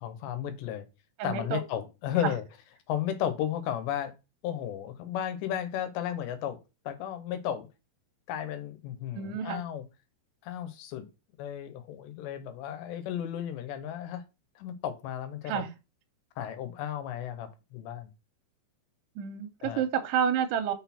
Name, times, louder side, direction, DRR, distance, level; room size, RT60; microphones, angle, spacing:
voice 1, 0.0-0.9 1.2-2.4 2.9-4.1 4.4-6.6 6.9-7.7 8.3-9.8 10.4-11.1 11.4-14.2 14.6-15.6 16.4-18.1 19.6-19.8, left 10 dB, 90° left, 3.1 m, -34 dB
voice 2, 1.2-1.6 2.2-2.3 9.2-9.6 15.5-15.7 19.2-20.7, right 8 dB, 90° right, 2.8 m, -29 dB
6.3 x 4.2 x 4.2 m
omnidirectional pair, 4.8 m